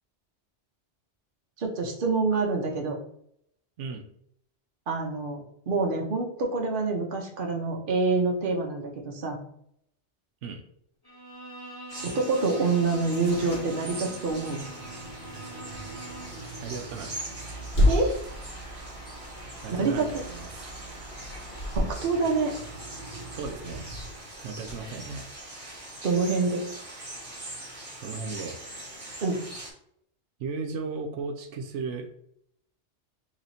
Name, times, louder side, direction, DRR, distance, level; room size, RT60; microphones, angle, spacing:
voice 1, 1.6-3.0 4.9-5.4 5.7-9.4 12.0-14.6 17.9-18.2 19.7-20.2 21.7-22.5 26.0-26.6 29.2-29.4, right 3 dB, 50° right, 1 dB, 0.9 m, -26 dB
Bowed string instrument, 11.0-16.5, right 2 dB, 20° left, 1.0 m, -44 dB
sound 1, 11.9-29.7, right 1 dB, 30° right, 1.1 m, -42 dB
sound 2, 12.8-25.8, left 1 dB, 45° left, 1.4 m, -34 dB
voice 2, 16.6-17.1 19.6-20.7 23.3-23.9 24.4-25.3 28.0-28.6 30.4-32.1, right 4 dB, 85° right, 4 dB, 0.9 m, -35 dB
3.1 x 2.9 x 4.0 m, 0.70 s
omnidirectional pair, 1.2 m